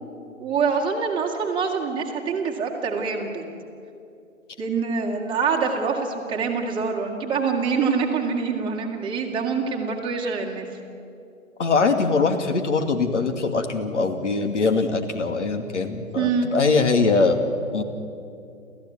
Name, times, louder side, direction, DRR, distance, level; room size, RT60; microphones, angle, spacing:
voice 1, 0.4-3.4 4.6-10.7 16.1-16.5, right 5 dB, 10° right, -1 dB, 2.5 m, -25 dB
voice 2, 11.6-17.4 17.7-17.8, left 4 dB, 60° left, 6 dB, 2.7 m, -22 dB
29.0 x 14.5 x 9.5 m, 2.6 s
figure-of-eight pair, 130°, 41 cm